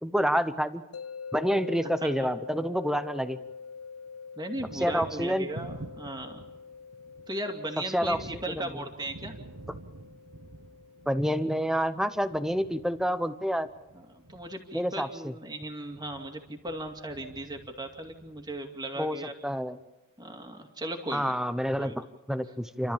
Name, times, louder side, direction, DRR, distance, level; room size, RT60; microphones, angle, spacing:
voice 1, 0.0-0.8 1.3-3.4 4.8-5.5 7.9-8.2 11.1-13.7 14.7-15.3 19.0-19.8 21.1-22.9, equal, ahead, 11 dB, 0.8 m, -28 dB
sound 1, 0.9-14.0, left 5 dB, 80° left, 0.9 m, -46 dB
Thunder, 2.3-3.5 3.8-19.1, right 2 dB, 60° right, 0.9 m, -48 dB
voice 2, 4.4-6.4 7.3-9.3 13.9-19.3 20.2-21.4 21.8-22.0, right 1 dB, 20° right, 3 dB, 2.4 m, -37 dB
29.5 x 13.0 x 7.3 m, 1.1 s
head